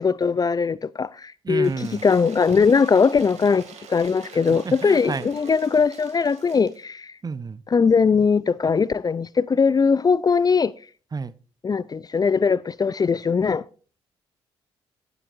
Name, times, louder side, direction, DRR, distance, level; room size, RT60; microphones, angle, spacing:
voice 1, 0.0-7.1 7.7-10.7 11.6-13.6, left 5 dB, 30° left, 0.4 m, -20 dB
voice 2, 1.4-2.0 4.6-5.3 7.2-7.6 11.1-11.3, right 4 dB, 30° right, 0.7 m, -30 dB
Cheering / Applause / Crowd, 1.6-6.8, right 6 dB, 60° right, 2.3 m, -45 dB
18.0 x 8.0 x 2.6 m
hypercardioid pair, 45°, 13 cm